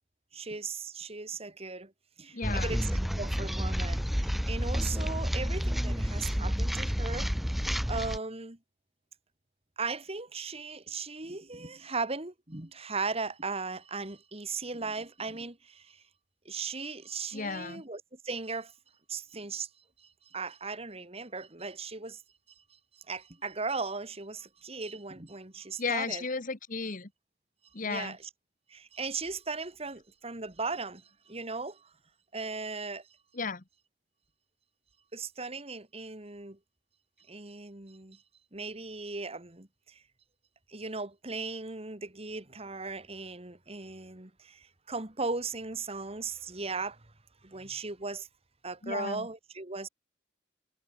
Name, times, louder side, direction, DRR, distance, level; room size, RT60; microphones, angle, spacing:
voice 1, 0.3-1.9 2.2-2.9 3.2-7.3 7.9-8.6 9.8-16.0 16.5-18.7 19.1-19.7 20.3-22.2 23.1-26.2 27.8-28.2 28.7-31.9 32.3-33.0 35.1-36.6 37.3-38.2 38.5-40.0 40.7-47.0 47.4-48.3 48.6-49.9, right 4 dB, 35° right, 2.4 m, -37 dB
voice 2, 2.3-2.8 17.3-17.8 25.8-27.1 27.7-28.2 33.3-33.6 48.8-49.3, left 4 dB, 45° left, 1.4 m, -34 dB
sound 1, 2.4-8.2, equal, ahead, 0.3 m, -30 dB
head